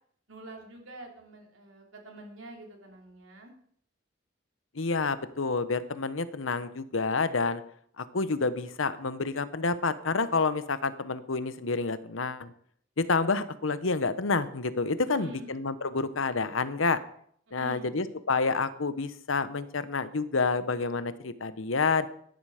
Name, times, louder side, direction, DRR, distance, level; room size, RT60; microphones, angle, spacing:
voice 1, 0.3-3.5 15.2-15.5 17.5-17.9, right 1 dB, 85° right, 1 dB, 3.4 m, -47 dB
voice 2, 4.7-7.6 8.0-12.5 13.0-17.0 17.5-22.1, left 4 dB, 90° left, 13 dB, 1.0 m, -29 dB
14.5 x 11.0 x 5.0 m, 0.63 s
head